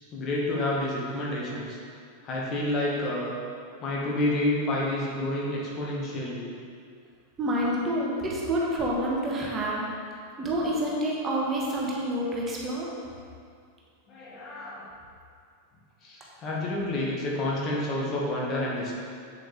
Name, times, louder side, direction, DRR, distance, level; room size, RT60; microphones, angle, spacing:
voice 1, 0.1-1.8 2.2-3.3 3.8-6.5 10.4-10.7 14.1-14.8 16.0-19.0, left 1 dB, 30° left, -4 dB, 1.7 m, -29 dB
voice 2, 7.4-9.8 10.4-12.9, right 1 dB, 20° right, -4 dB, 1.5 m, -28 dB
8.0 x 7.7 x 3.5 m, 2.2 s
figure-of-eight pair, 90°, 0 cm